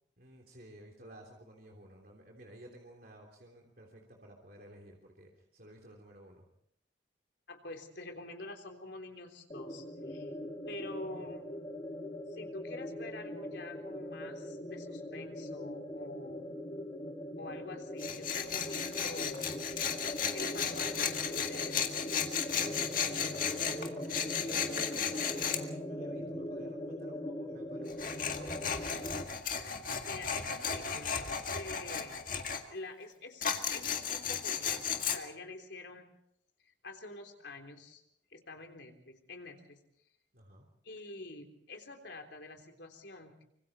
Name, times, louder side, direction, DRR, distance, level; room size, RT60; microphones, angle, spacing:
voice 1, 0.2-6.5 22.5-29.1 40.3-40.7, right 1 dB, 50° right, 0 dB, 3.3 m, -53 dB
voice 2, 7.5-10.3 10.7-11.5 12.3-16.4 17.4-19.5 20.3-22.0 30.1-32.2 32.7-36.1 36.6-38.0 38.3-39.8 40.8-43.4, left 2 dB, 70° left, 4 dB, 3.5 m, -47 dB
sound 1, 9.5-29.2, left 1 dB, 25° left, 2.5 m, -41 dB
Tools, 18.0-25.6 27.9-32.6 33.4-35.2, left 7 dB, 45° left, 1.9 m, -35 dB
25.5 x 25.0 x 4.3 m, 0.70 s
head